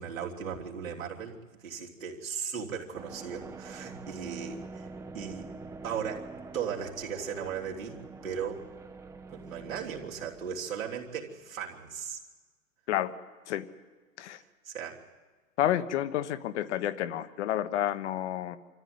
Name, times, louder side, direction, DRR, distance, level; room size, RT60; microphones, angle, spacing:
voice 1, 0.0-1.4 1.6-4.9 5.1-5.5 5.8-8.6 9.3-12.2 14.6-15.0, right 7 dB, 85° right, -3 dB, 3.4 m, -37 dB
sound 1, 2.9-11.5, right 4 dB, 10° right, 0.6 m, -46 dB
voice 2, 15.6-18.6, left 12 dB, 60° left, 12 dB, 1.3 m, -30 dB
25.5 x 14.0 x 9.5 m, 1.4 s
hypercardioid pair, 120°, 39 cm